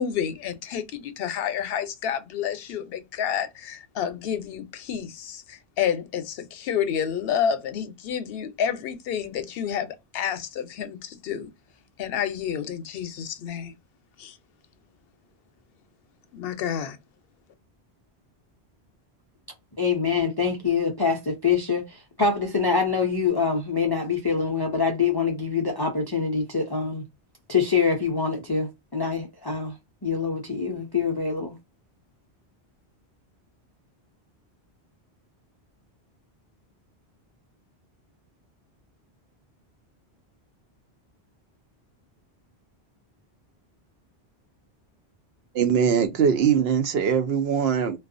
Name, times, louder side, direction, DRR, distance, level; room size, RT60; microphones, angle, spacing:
voice 1, 0.0-11.5 12.0-13.7 14.2-14.4 16.3-17.0, left 8 dB, 70° left, 0.8 m, -29 dB
voice 2, 19.8-27.1 27.5-29.8 30.0-31.5, left 5 dB, 35° left, 0.4 m, -25 dB
voice 3, 45.5-48.0, right 7 dB, 70° right, 0.8 m, -22 dB
2.4 x 2.3 x 2.4 m
omnidirectional pair, 1.1 m